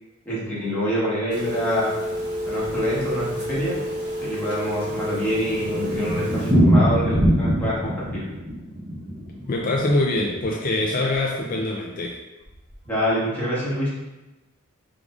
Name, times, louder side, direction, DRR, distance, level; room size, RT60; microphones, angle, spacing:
voice 1, 0.2-1.9 2.5-3.8 4.2-8.3 12.8-13.9, equal, 10° left, -9 dB, 1.5 m, -26 dB
Telephone, 1.3-6.5, equal, 50° right, 1.3 m, -29 dB
Thunder, 5.2-10.9 11.1-11.2 11.5-11.6 11.9-12.0 12.5-12.8, equal, 30° right, 1.2 m, -23 dB
voice 2, 9.5-12.2, left 2 dB, 40° left, -1 dB, 0.4 m, -24 dB
4.7 x 3.7 x 2.5 m, 1.0 s
head